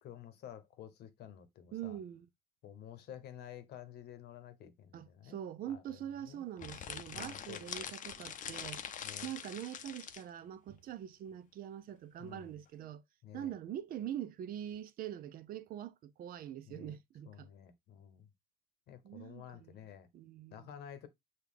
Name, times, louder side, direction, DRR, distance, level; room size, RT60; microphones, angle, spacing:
voice 1, 0.0-2.0 2.6-5.4 5.7-6.0 6.2-6.5 7.2-7.9 9.0-9.3 12.2-12.6 13.2-13.5 16.7-17.0 17.3-18.3 18.9-20.1 20.5-21.1, left 10 dB, 75° left, 0.9 m, -51 dB
voice 2, 1.7-2.3 4.9-8.8 9.2-13.0 13.3-17.5 19.0-19.8 20.1-20.7, right 10 dB, 60° right, 0.5 m, -44 dB
sound 1, 6.6-10.3, left 8 dB, 50° left, 0.6 m, -44 dB
6.5 x 2.3 x 3.6 m
cardioid pair, 110°, 17 cm